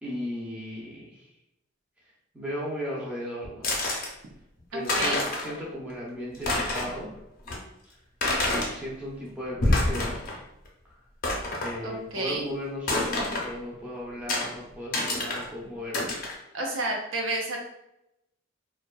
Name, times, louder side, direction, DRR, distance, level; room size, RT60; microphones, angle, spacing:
voice 1, 0.0-1.3 2.3-3.7 4.7-7.1 7.8-8.0 8.4-10.2 11.6-16.1, equal, 5° right, -5 dB, 0.5 m, -36 dB
sound 1, 3.6-4.1 4.6-4.7 4.8-5.6 5.9-6.0 6.3-7.0 7.5-7.6 8.2-8.7 9.4-10.4 10.6-10.7 11.2-11.7 12.9-13.5 14.3-14.5 14.9-15.5 15.9-16.3, left 2 dB, 45° left, 0.5 m, -27 dB
voice 2, 4.7-5.3 11.8-12.5 16.5-17.7, right 2 dB, 70° right, 1 dB, 0.5 m, -31 dB
2.6 x 2.2 x 2.2 m, 0.85 s
head